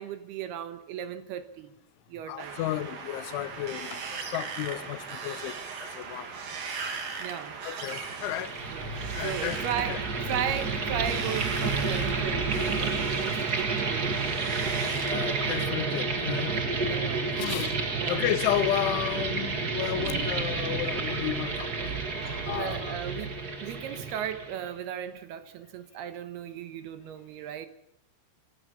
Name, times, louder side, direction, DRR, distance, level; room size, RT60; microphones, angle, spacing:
voice 1, 0.0-1.7 2.1-2.6 7.2-7.6 8.7-14.5 16.8-17.5 18.0-18.2 22.5-27.7, right 10 dB, 75° right, 2.7 m, -36 dB
voice 2, 2.3-5.5 5.9-6.3 7.6-8.5 9.1-9.6 9.9-10.0 15.1-16.6 17.4-17.8 18.1-21.9 22.3-23.0, left 13 dB, 85° left, 3.4 m, -32 dB
Wind, 2.4-15.6, right 5 dB, 55° right, 4.2 m, -39 dB
sound 1, 8.0-24.7, right 4 dB, 35° right, 1.5 m, -30 dB
26.5 x 14.5 x 8.5 m
omnidirectional pair, 5.3 m